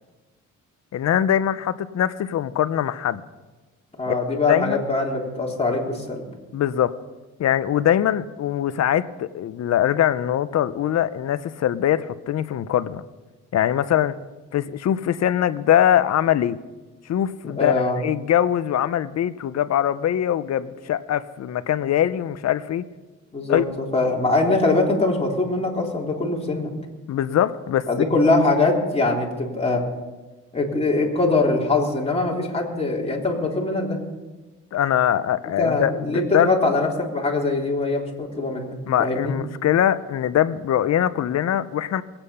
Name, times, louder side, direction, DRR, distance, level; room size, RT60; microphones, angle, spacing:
voice 1, 0.9-3.2 4.3-4.8 6.5-6.9 7.4-13.0 13.5-14.2 14.5-16.6 17.1-22.9 23.5-23.6 27.1-28.0 34.7-36.5 38.9-42.0, left 10 dB, 60° left, 14 dB, 0.8 m, -22 dB
voice 2, 4.0-6.2 17.4-18.0 23.3-23.6 23.9-26.7 27.9-29.8 30.5-34.0 35.6-39.3, left 2 dB, 20° left, -2 dB, 3.5 m, -22 dB
21.5 x 8.9 x 5.7 m, 1.2 s
cardioid pair, 90°, 30 cm